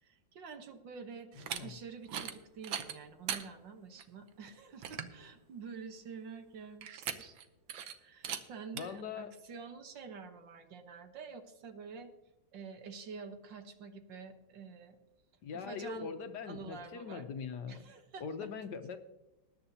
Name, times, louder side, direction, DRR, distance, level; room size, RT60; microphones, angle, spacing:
voice 1, 0.0-1.3 1.6-7.4 8.0-12.1 12.5-15.0 15.5-16.1 16.4-17.3 17.7-18.5, right 5 dB, 70° right, 6 dB, 1.8 m, -48 dB
sound 1, 1.3-1.6 2.0-2.4 2.6-3.4 4.0-4.1 4.5-4.6 4.8-5.2 6.8-7.4 7.7-7.9 8.2-8.4 8.8-8.9, right 9 dB, 90° right, 1.7 m, -39 dB
voice 2, 1.4-1.7 8.7-9.3 15.4-17.9 18.2-19.0, left 6 dB, 65° left, 8 dB, 1.3 m, -42 dB
20.0 x 10.0 x 2.8 m, 0.99 s
omnidirectional pair, 2.1 m